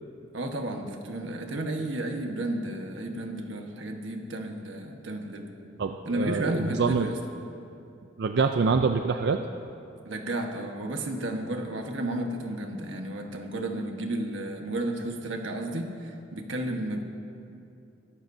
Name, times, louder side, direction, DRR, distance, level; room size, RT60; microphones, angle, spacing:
voice 1, 0.3-5.5 6.0-7.2 10.0-17.0, right 1 dB, 85° right, 3 dB, 1.3 m, -32 dB
voice 2, 5.8-7.1 8.2-9.4, right 4 dB, 60° right, 6 dB, 0.4 m, -25 dB
22.5 x 12.5 x 2.7 m, 2.7 s
head